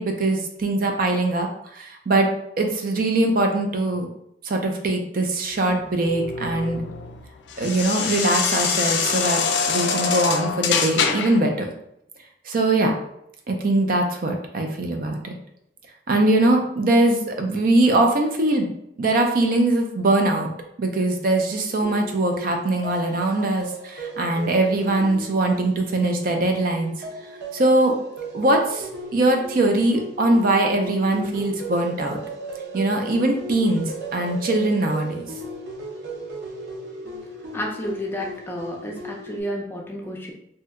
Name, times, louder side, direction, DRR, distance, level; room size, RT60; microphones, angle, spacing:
voice 1, 0.0-2.3 2.6-4.1 4.4-6.8 7.6-9.4 9.7-11.7 12.5-13.0 13.5-15.4 16.1-18.7 19.0-20.5 20.8-26.9 27.5-27.9 28.3-32.2 32.7-35.3, right 2 dB, 55° right, 3 dB, 0.4 m, -21 dB
sound 1, 5.6-11.4, left 6 dB, 90° left, 0.4 m, -25 dB
sound 2, 21.8-39.4, right 1 dB, 90° right, 0.7 m, -36 dB
voice 2, 37.5-40.3, equal, 15° left, -1 dB, 0.5 m, -31 dB
2.7 x 2.1 x 3.5 m, 0.77 s
head